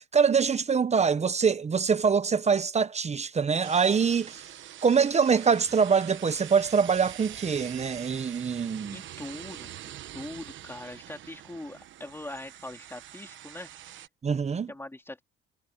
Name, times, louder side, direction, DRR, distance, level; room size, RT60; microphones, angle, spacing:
voice 1, 0.0-4.4 4.8-9.0 14.2-14.7, right 6 dB, 35° right, 0.9 m, -24 dB
sound 1, 3.6-14.1, right 12 dB, 75° right, 1.1 m, -45 dB
voice 2, 8.9-14.0 14.7-15.2, left 1 dB, 10° left, 3.3 m, -42 dB
cardioid pair, 90°, 20 cm